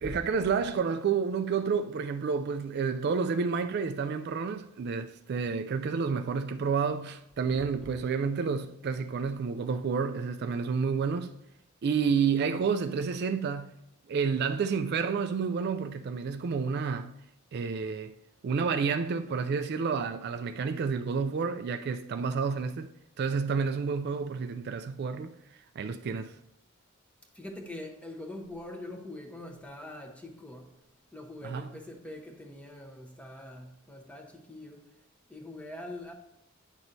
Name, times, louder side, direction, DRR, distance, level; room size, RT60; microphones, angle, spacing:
voice 1, 0.0-11.3 11.8-13.7 14.1-17.2 17.5-18.1 18.4-22.9 23.2-25.3 25.8-26.3 31.4-31.7, right 5 dB, 50° right, 0.3 m, -30 dB
voice 2, 7.5-7.9 27.3-30.7 31.1-35.0 35.3-36.1, left 1 dB, 5° left, 0.9 m, -43 dB
9.7 x 6.1 x 2.6 m
head